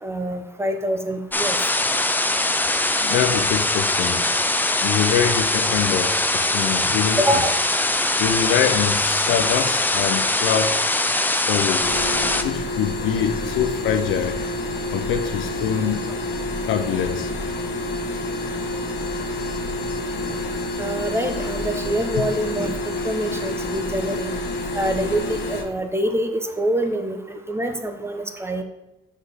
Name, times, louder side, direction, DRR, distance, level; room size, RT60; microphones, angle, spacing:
voice 1, 0.0-1.6 5.3-5.4 7.2-7.7 16.1-16.2 20.2-20.4 20.8-24.4 24.7-28.6, right 1 dB, 10° right, 6 dB, 0.9 m, -25 dB
sound 1, 1.3-12.4, left 2 dB, 10° left, 0.5 m, -22 dB
voice 2, 3.0-4.2 4.8-7.4 8.2-10.8 11.3-11.9 12.4-14.4 14.9-16.0 16.7-17.3, left 8 dB, 85° left, 8 dB, 0.7 m, -24 dB
sound 2, 11.8-25.6, left 1 dB, 60° left, 1.4 m, -28 dB
6.3 x 5.2 x 4.1 m, 0.96 s
cardioid pair, 90°, 20 cm